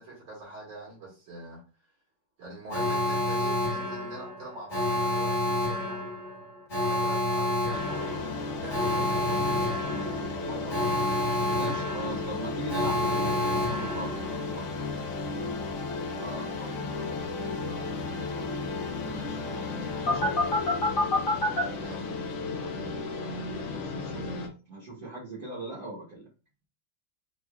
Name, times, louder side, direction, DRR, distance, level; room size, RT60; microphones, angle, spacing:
voice 1, 0.0-1.6 2.4-6.0 6.8-11.1 16.1-18.6 21.8-24.2, right 1 dB, 80° right, -5 dB, 2.5 m, -44 dB
Alarm, 2.7-14.6 20.1-21.6, left 1 dB, 45° left, 1.5 m, -29 dB
sound 1, 7.7-24.5, left 3 dB, 75° left, 0.7 m, -34 dB
voice 2, 11.5-14.7 19.0-20.4 23.6-24.3 24.7-26.2, right 1 dB, 50° right, -7 dB, 1.3 m, -39 dB
4.7 x 2.4 x 2.2 m, 0.33 s
omnidirectional pair, 2.3 m